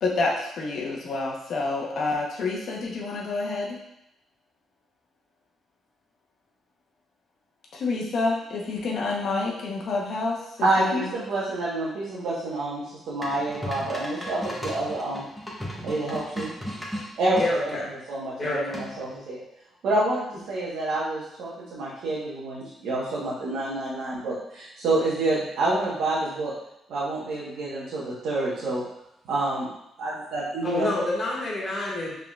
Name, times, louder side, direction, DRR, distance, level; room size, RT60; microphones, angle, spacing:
voice 1, 0.0-3.8 7.7-11.1, left 3 dB, 65° left, -2 dB, 0.8 m, -28 dB
voice 2, 10.6-15.2 15.8-16.5 17.2-17.4 17.7-17.8 18.1-19.4 19.8-26.5 26.9-28.8 29.3-29.7 30.0-30.9, right 2 dB, 80° right, -8 dB, 1.0 m, -28 dB
sound 1, 13.2-17.5 18.7-19.1, equal, ahead, 1.0 m, -35 dB
voice 3, 17.4-17.9 18.4-18.8 30.6-32.1, left 1 dB, 35° left, -5 dB, 1.5 m, -28 dB
4.9 x 3.6 x 2.3 m, 0.80 s
cardioid pair, 90°, 0 cm